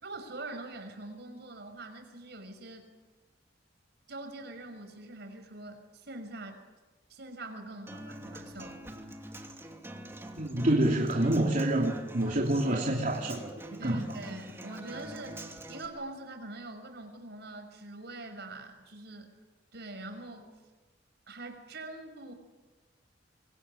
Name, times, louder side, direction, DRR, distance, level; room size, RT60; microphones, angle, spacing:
voice 1, 0.0-2.9 4.1-6.6 7.1-8.9 12.6-12.9 13.8-15.4 15.7-19.3 19.7-20.6 21.3-22.3, right 2 dB, 65° right, 7 dB, 5.5 m, -44 dB
Human voice / Acoustic guitar, 7.9-15.9, right 1 dB, 15° right, 2.8 m, -45 dB
voice 2, 10.4-13.5 13.8-14.0, right 1 dB, 45° right, -1 dB, 3.1 m, -27 dB
26.0 x 23.0 x 10.0 m, 1.3 s
head